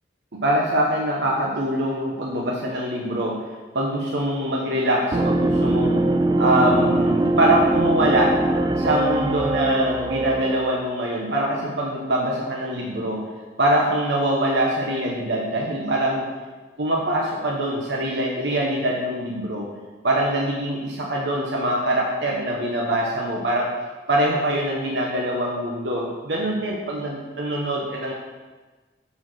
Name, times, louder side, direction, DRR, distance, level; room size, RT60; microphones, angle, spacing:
voice 1, 0.3-3.4 3.7-6.0 6.4-8.4 8.8-13.2 13.6-16.3 16.8-19.7 20.0-23.7 24.1-28.1, right 1 dB, 75° right, -2 dB, 1.2 m, -23 dB
sound 1, 5.1-10.8, right 1 dB, 25° right, 0.4 m, -22 dB
9.2 x 4.3 x 6.4 m, 1.3 s
head